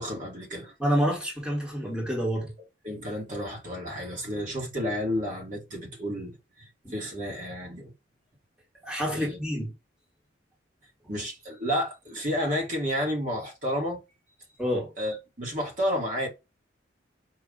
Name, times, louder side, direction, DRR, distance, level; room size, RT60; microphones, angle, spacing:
voice 1, 0.0-0.7 2.8-7.9 9.1-9.4 11.1-14.0 14.5-14.6 15.0-16.3, equal, 40° right, 1.3 m, -31 dB
voice 2, 0.8-2.5 6.8-6.9 8.8-9.7 14.6-14.9, equal, 5° right, 1.2 m, -28 dB
4.9 x 2.4 x 3.6 m
head